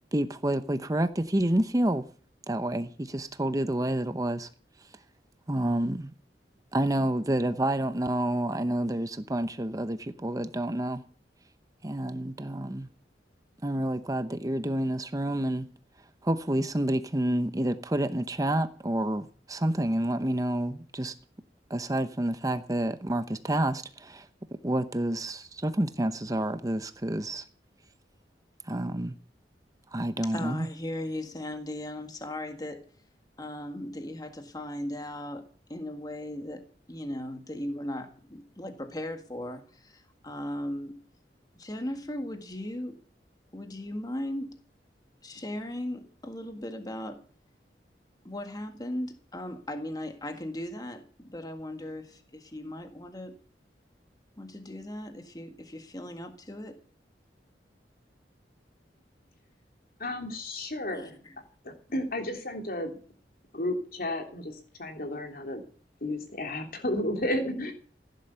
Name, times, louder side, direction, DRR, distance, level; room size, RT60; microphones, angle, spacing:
voice 1, 0.1-2.0 2.5-4.5 5.5-6.1 6.7-11.0 11.8-12.9 13.6-15.7 16.2-21.1 21.7-24.3 24.6-27.4 28.6-29.1 29.9-30.7, right 1 dB, 20° right, 0.8 m, -29 dB
voice 2, 30.2-32.8 33.4-35.4 35.7-41.0 41.5-43.0 43.5-44.6 45.2-47.2 48.2-53.3 54.4-56.8 60.9-61.4, left 1 dB, 20° left, 1.7 m, -37 dB
voice 3, 60.0-61.2 61.6-63.0 63.5-65.6 66.0-67.7, left 1 dB, 55° left, 3.2 m, -32 dB
16.0 x 11.0 x 6.9 m
head